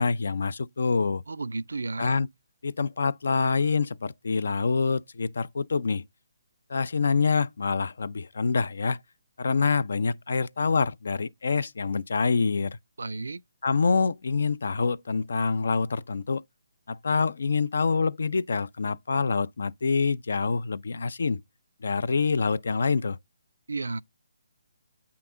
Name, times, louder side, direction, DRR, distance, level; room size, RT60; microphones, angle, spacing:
voice 1, 0.0-1.2 2.0-2.3 2.6-6.0 6.7-9.0 9.4-12.8 13.6-16.4 16.9-21.4 21.8-23.2, left 4 dB, 70° left, 0.5 m, -26 dB
voice 2, 1.3-2.2 13.0-13.4 23.7-24.0, right 3 dB, 85° right, 0.4 m, -33 dB
8.5 x 5.8 x 3.7 m
hypercardioid pair, 155°, 0 cm